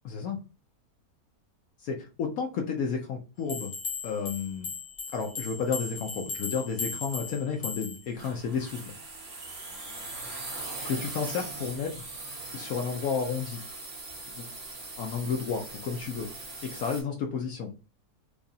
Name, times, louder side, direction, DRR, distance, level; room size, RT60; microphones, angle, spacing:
voice 1, 0.0-0.4 1.8-3.7 4.0-4.7 5.1-8.9 10.8-12.0 12.5-13.6 14.3-14.5 15.0-16.3 16.6-17.7, left 6 dB, 70° left, 2 dB, 1.0 m, -32 dB
sound 1, 3.5-8.1, left 4 dB, 45° left, 0.9 m, -37 dB
sound 2, 8.2-17.0, right 2 dB, 65° right, 2.1 m, -40 dB
4.7 x 2.4 x 2.7 m, 0.33 s
omnidirectional pair, 1.6 m